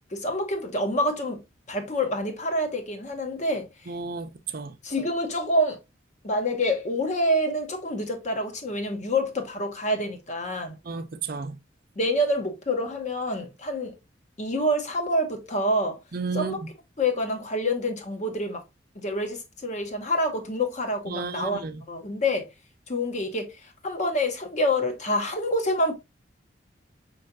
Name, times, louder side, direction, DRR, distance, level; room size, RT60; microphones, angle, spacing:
voice 1, 0.1-1.4 1.7-3.7 4.8-5.8 6.2-10.8 12.0-14.0 14.4-16.0 16.3-16.6 17.0-18.6 18.9-21.6 21.9-22.5 22.9-23.6 23.8-25.9, left 1 dB, 40° left, 0.9 m, -27 dB
voice 2, 3.9-4.8 10.8-11.6 16.1-16.6 21.1-21.8, right 4 dB, 50° right, 0.5 m, -33 dB
5.6 x 3.2 x 2.6 m
head